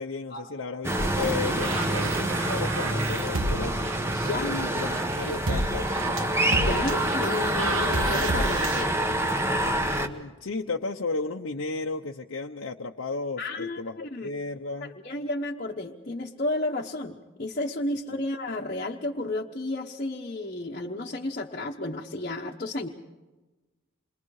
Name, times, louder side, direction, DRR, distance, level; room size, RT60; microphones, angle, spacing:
voice 1, 0.0-3.8 4.4-6.0 9.9-15.0, left 3 dB, 75° left, 1 dB, 0.9 m, -34 dB
sound 1, 0.8-10.1, right 1 dB, 10° right, 1.2 m, -27 dB
sound 2, 1.0-8.8, right 2 dB, 80° right, 1.4 m, -32 dB
voice 2, 4.2-4.6 6.6-8.9 13.4-13.8 14.1-14.3 14.8-22.9, left 2 dB, 40° left, -2 dB, 1.1 m, -32 dB
28.0 x 22.5 x 4.9 m, 1.2 s
head